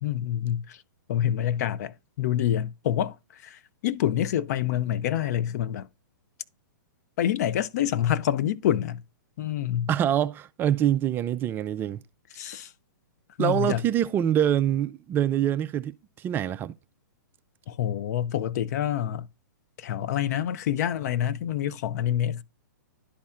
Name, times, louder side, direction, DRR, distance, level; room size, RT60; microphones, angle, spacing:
voice 1, 0.0-0.8 1.1-5.9 7.2-9.0 9.4-9.9 12.3-12.7 13.4-13.8 17.7-19.3 19.8-22.4, left 11 dB, 55° left, 0.6 m, -27 dB
voice 2, 9.9-12.0 13.4-16.7, right 10 dB, 20° right, 0.3 m, -25 dB
11.0 x 4.2 x 2.3 m
hypercardioid pair, 130°, 11 cm